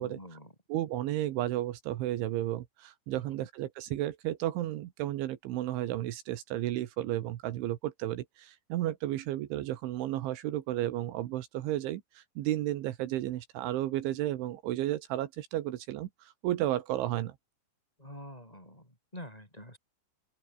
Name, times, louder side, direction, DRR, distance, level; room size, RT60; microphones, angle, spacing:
voice 1, 0.0-0.5 3.1-3.5 18.0-19.8, equal, 5° left, 6.1 m, -47 dB
voice 2, 0.7-17.4, right 14 dB, 75° right, 3.7 m, -33 dB
open air
omnidirectional pair, 5.6 m